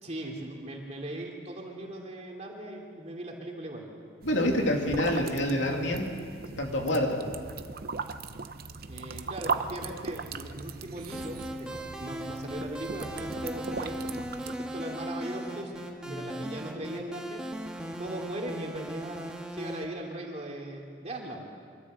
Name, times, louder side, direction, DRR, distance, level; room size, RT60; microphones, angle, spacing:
voice 1, 0.0-3.9 8.9-14.0 14.4-17.5 18.0-21.5, right 1 dB, 35° right, 0 dB, 2.9 m, -39 dB
voice 2, 4.2-6.1 6.6-7.2 16.1-16.3, left 1 dB, 85° left, 1 dB, 2.8 m, -27 dB
sound 1, 4.2-14.6, right 4 dB, 55° right, 0.8 m, -38 dB
sound 2, 11.1-19.8, equal, 5° right, 1.7 m, -38 dB
24.0 x 13.5 x 7.9 m, 2.1 s
head